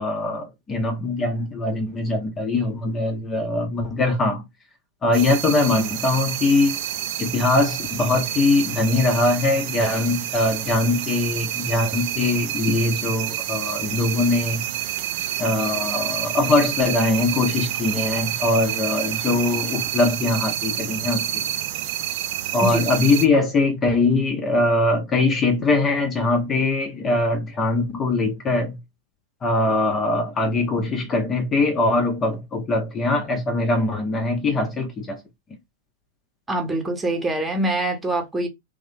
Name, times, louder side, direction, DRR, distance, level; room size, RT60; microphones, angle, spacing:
voice 1, 0.0-4.4 5.0-6.8 7.2-14.6 15.4-21.4 22.5-28.8 29.4-35.2, left 2 dB, 20° left, 0.8 m, -22 dB
sound 1, 5.1-23.3, right 11 dB, 50° right, 0.5 m, -28 dB
voice 2, 36.5-38.5, right 1 dB, 10° right, 1.1 m, -24 dB
3.1 x 2.6 x 3.7 m
figure-of-eight pair, 100°, 0 cm